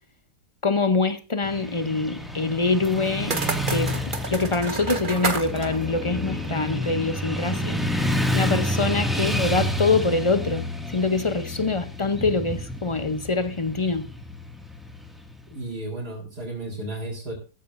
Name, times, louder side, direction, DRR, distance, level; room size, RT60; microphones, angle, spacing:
voice 1, 0.6-3.4 3.7-4.0 4.3-7.8 8.3-14.1, left 3 dB, 45° left, 0.3 m, -24 dB
Motorcycle / Traffic noise roadway noise, 1.4-15.5, equal, ahead, 1.9 m, -29 dB
sound 1, 2.8-7.0, right 3 dB, 30° right, 1.5 m, -31 dB
voice 2, 7.4-7.9 9.1-9.4 15.5-17.3, right 1 dB, 70° right, 4.4 m, -34 dB
15.5 x 14.0 x 2.6 m
omnidirectional pair, 1.8 m